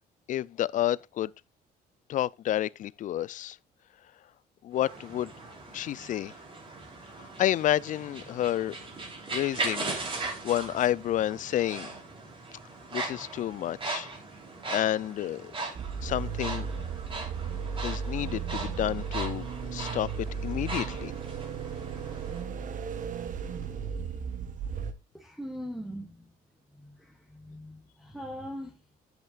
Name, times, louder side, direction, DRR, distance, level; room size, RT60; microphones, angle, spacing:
voice 1, 0.3-1.3 2.1-3.6 4.6-5.3 5.7-6.3 7.2-8.8 9.3-9.9 10.4-11.9 12.9-14.1 14.7-15.5 16.0-16.7 17.8-21.1, left 12 dB, 50° left, 0.4 m, -30 dB
sound 1, 4.7-22.4, right 3 dB, 30° right, 3.4 m, -39 dB
sound 2, 15.7-24.9, right 6 dB, 50° right, 1.2 m, -35 dB
voice 2, 25.1-26.2 26.8-28.8, equal, ahead, 1.4 m, -41 dB
10.5 x 8.0 x 2.4 m
cardioid pair, 110°, 17 cm